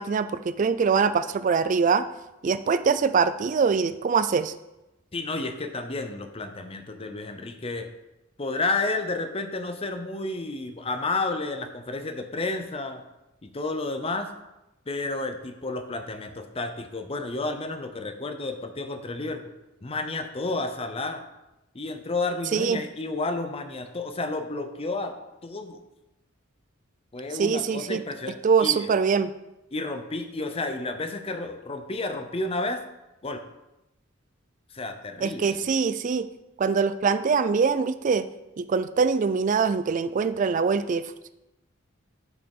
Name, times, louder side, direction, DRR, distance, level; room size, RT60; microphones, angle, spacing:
voice 1, 0.0-2.1 2.4-4.5 22.5-22.8 27.4-28.0 28.4-29.3 35.2-36.3 36.6-38.3 38.6-41.3, right 5 dB, 40° right, 12 dB, 0.3 m, -23 dB
voice 2, 5.1-7.9 8.4-13.0 13.4-14.3 14.9-19.4 19.8-21.2 21.7-25.2 25.4-25.8 27.1-28.9 29.7-32.8 33.2-33.4 34.7-35.7, left 3 dB, 30° left, 7 dB, 0.7 m, -31 dB
7.8 x 4.9 x 5.4 m, 0.95 s
head